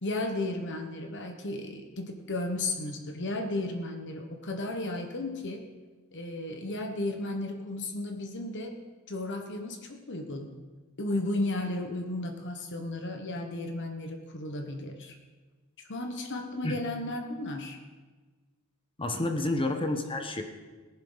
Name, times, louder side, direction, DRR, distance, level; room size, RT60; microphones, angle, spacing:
voice 1, 0.0-5.6 6.1-8.7 9.1-10.6 11.0-15.1 15.9-17.8, left 2 dB, 55° left, 4 dB, 1.3 m, -34 dB
voice 2, 19.0-20.4, left 2 dB, 25° left, 6 dB, 1.0 m, -29 dB
18.0 x 10.5 x 4.0 m, 1.3 s
head